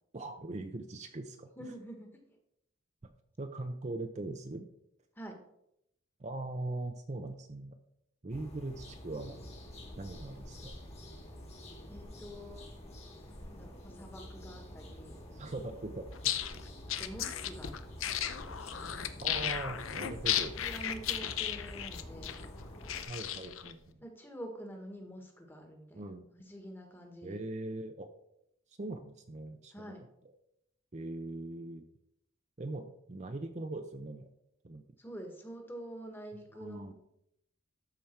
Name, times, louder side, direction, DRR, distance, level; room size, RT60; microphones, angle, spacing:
voice 1, 0.1-1.5 3.0-3.1 3.4-4.7 6.2-7.8 8.2-9.4 10.0-10.7 15.3-16.6 19.2-20.6 23.1-24.0 25.9-26.3 27.2-28.1 28.8-29.9 30.9-31.8 32.6-34.3 34.6-34.8 36.5-36.9, right 2 dB, 35° right, 6 dB, 0.6 m, -41 dB
voice 2, 1.6-2.4 5.1-5.4 11.9-12.6 13.2-15.2 16.9-17.7 18.7-19.3 20.6-22.4 24.0-26.1 26.3-27.4 29.7-30.0 35.0-36.9, right 1 dB, 10° left, 3 dB, 1.5 m, -47 dB
sound 1, 8.3-23.0, left 1 dB, 30° left, 1.9 m, -48 dB
sound 2, 16.1-23.7, left 10 dB, 85° left, 0.7 m, -35 dB
13.0 x 5.1 x 4.5 m, 0.78 s
head